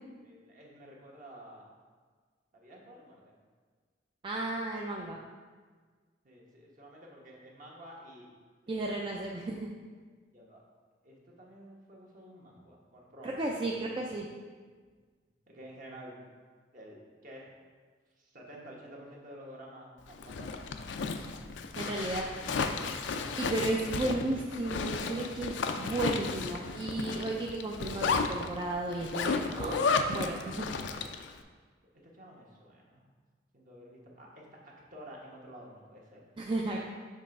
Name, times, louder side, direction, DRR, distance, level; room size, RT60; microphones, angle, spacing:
voice 1, 0.2-1.7 2.5-3.3 6.2-8.3 9.1-9.2 10.3-10.6 11.0-14.1 15.5-16.3 16.7-17.6 18.2-21.1 32.0-33.0 33.5-36.8, equal, 50° right, -2 dB, 1.3 m, -51 dB
voice 2, 4.2-5.2 8.7-9.7 13.2-14.3 21.8-22.3 23.4-29.8 30.1-30.7 36.4-36.8, right 2 dB, 30° right, -1 dB, 0.4 m, -34 dB
Zipper (clothing), 20.1-31.3, left 4 dB, 85° left, 0.4 m, -33 dB
6.4 x 3.3 x 5.2 m, 1.5 s
head